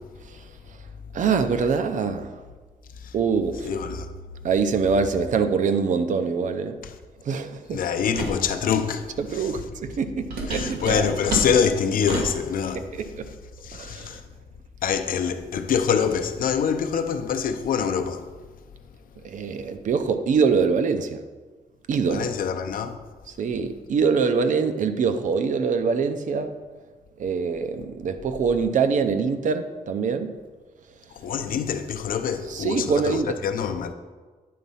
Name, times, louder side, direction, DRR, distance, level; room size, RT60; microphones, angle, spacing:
voice 1, 1.1-2.3 3.1-3.7 4.4-6.8 7.2-7.8 9.2-11.1 13.0-13.3 13.7-14.1 19.2-21.2 21.9-22.3 23.4-26.5 27.2-30.3 32.5-33.3, right 5 dB, 55° right, 0.6 m, -24 dB
voice 2, 3.6-4.1 6.8-6.9 7.7-9.6 10.5-13.1 13.6-14.2 14.8-18.2 22.1-23.0 31.1-33.9, left 7 dB, 60° left, 0.6 m, -25 dB
sound 1, 8.1-8.4 10.3-12.4, right 2 dB, 85° right, 1.9 m, -30 dB
9.4 x 4.1 x 5.5 m
wide cardioid pair, 160°, 16 cm